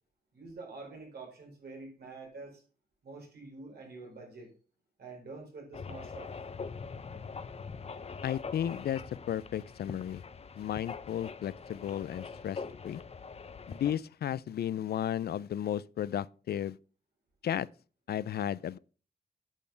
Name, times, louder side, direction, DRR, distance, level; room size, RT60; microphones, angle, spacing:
voice 1, 0.3-2.6 3.0-4.5 5.0-6.3, right 3 dB, 85° right, 4.6 m, -47 dB
sound 1, 5.7-14.0, left 5 dB, 40° left, 0.7 m, -43 dB
voice 2, 8.2-9.0 9.3-10.2 10.6-13.0 13.7-16.8 17.4-17.7 18.1-18.8, left 10 dB, 85° left, 0.4 m, -34 dB
8.8 x 6.4 x 5.8 m
wide cardioid pair, 120°, 16 cm